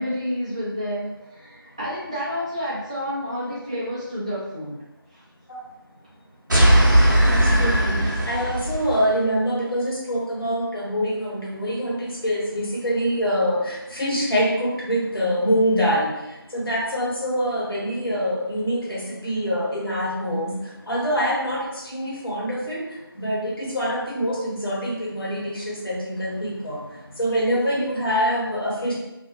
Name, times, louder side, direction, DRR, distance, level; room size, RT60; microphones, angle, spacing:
voice 1, 0.0-4.8 5.1-5.2 7.8-7.9, equal, 15° right, -10 dB, 0.6 m, -29 dB
sound 1, 6.5-9.1, right 1 dB, 50° right, 0.8 m, -18 dB
voice 2, 7.3-28.9, equal, 70° left, -6 dB, 1.2 m, -25 dB
2.4 x 2.3 x 2.7 m, 0.97 s
figure-of-eight pair, 165°, 13 cm